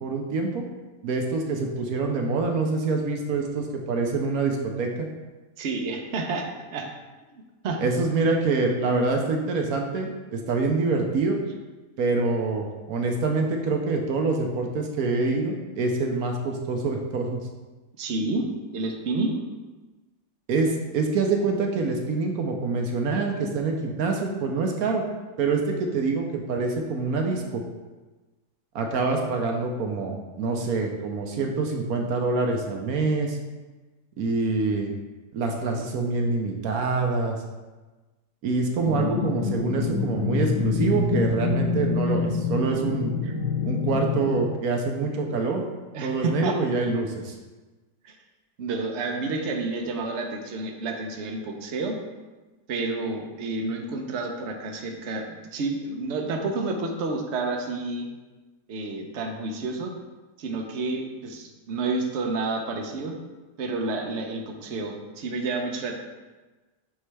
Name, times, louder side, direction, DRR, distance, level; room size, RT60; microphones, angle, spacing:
voice 1, 0.0-0.6 1.0-5.1 7.8-11.4 12.0-17.4 20.5-25.0 25.4-27.6 28.7-33.4 34.2-34.9 35.3-37.4 38.4-43.1 43.6-45.6 46.0-47.3, right 3 dB, 70° right, 2 dB, 1.1 m, -26 dB
voice 2, 5.6-6.9 7.6-7.8 18.0-18.5 18.7-19.4 43.2-43.3 45.9-46.6 48.0-48.2 48.6-51.9 52.7-58.1 58.7-59.9 60.4-63.1 63.6-65.9, right 3 dB, 55° right, 3 dB, 0.9 m, -30 dB
sound 1, 38.8-44.3, left 4 dB, 55° left, 1.2 m, -26 dB
9.3 x 3.3 x 3.3 m, 1.2 s
omnidirectional pair, 1.7 m